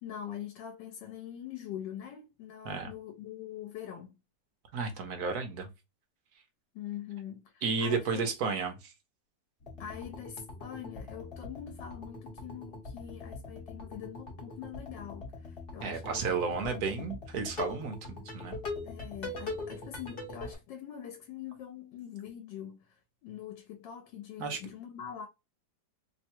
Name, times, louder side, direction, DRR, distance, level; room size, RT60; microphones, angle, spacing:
voice 1, 0.0-4.1 6.7-8.3 9.8-16.3 16.6-17.1 18.8-23.0 23.2-25.3, left 9 dB, 80° left, 1.3 m, -43 dB
voice 2, 4.7-5.7 7.6-8.9 15.8-18.6 24.4-24.6, right 4 dB, 65° right, 1.1 m, -33 dB
sound 1, 9.6-20.6, left 2 dB, 35° left, 1.1 m, -42 dB
3.2 x 2.2 x 4.3 m
omnidirectional pair, 2.0 m